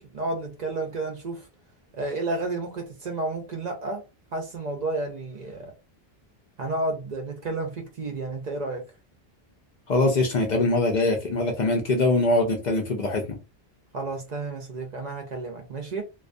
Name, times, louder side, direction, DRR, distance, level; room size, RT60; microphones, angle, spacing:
voice 1, 0.0-1.5 1.9-4.0 4.3-5.7 6.6-8.8 13.9-16.0, right 2 dB, 50° right, 0.6 m, -31 dB
voice 2, 9.9-13.2, left 2 dB, 55° left, 0.6 m, -22 dB
2.3 x 2.2 x 2.5 m
omnidirectional pair, 1.1 m